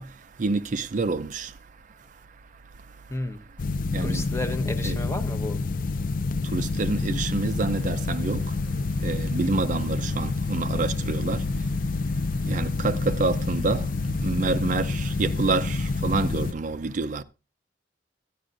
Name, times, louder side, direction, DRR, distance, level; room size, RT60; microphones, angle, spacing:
voice 1, 0.0-2.2 2.5-3.1 3.9-4.3 4.8-5.0 6.4-17.2, right 3 dB, 45° right, 0.5 m, -29 dB
voice 2, 3.1-3.4 4.0-5.6, left 1 dB, 15° left, 0.8 m, -32 dB
sound 1, 3.6-16.5, left 3 dB, 50° left, 0.4 m, -28 dB
13.0 x 11.0 x 2.5 m
head